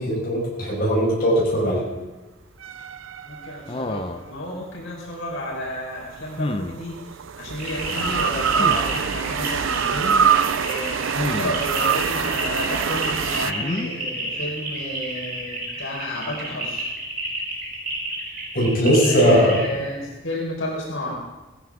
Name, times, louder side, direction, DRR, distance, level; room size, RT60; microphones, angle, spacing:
voice 1, 0.0-1.8 18.5-19.6, equal, 50° left, -5 dB, 5.7 m, -19 dB
sound 1, 2.6-4.1 6.0-13.5, right 7 dB, 85° right, 0.5 m, -24 dB
voice 2, 3.2-7.0 7.3-16.8 19.0-21.2, left 1 dB, 90° left, -3 dB, 4.7 m, -32 dB
sound 2, 3.7-4.3 6.4-6.8 8.5-8.8 11.1-11.6 13.4-13.9, left 1 dB, 25° left, 0.6 m, -28 dB
sound 3, 7.6-19.7, right 2 dB, 45° right, 5.1 m, -31 dB
17.0 x 14.5 x 3.7 m, 1.2 s
head